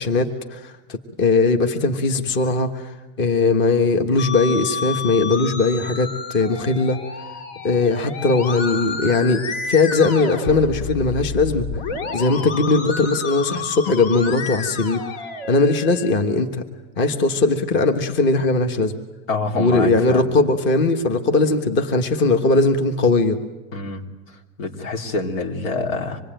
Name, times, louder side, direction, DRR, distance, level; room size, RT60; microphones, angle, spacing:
voice 1, 0.0-7.0 7.6-11.7 12.1-15.0 15.5-16.6 17.0-18.9 19.6-23.4, left 3 dB, 30° left, 6 dB, 1.4 m, -19 dB
Musical instrument, 4.2-16.1, left 4 dB, 70° left, 3.7 m, -30 dB
voice 2, 19.3-20.2 23.7-24.0 24.6-26.2, left 3 dB, 85° left, 2 dB, 3.5 m, -26 dB
26.0 x 21.0 x 9.1 m, 1.1 s
supercardioid pair, 175°, 40 cm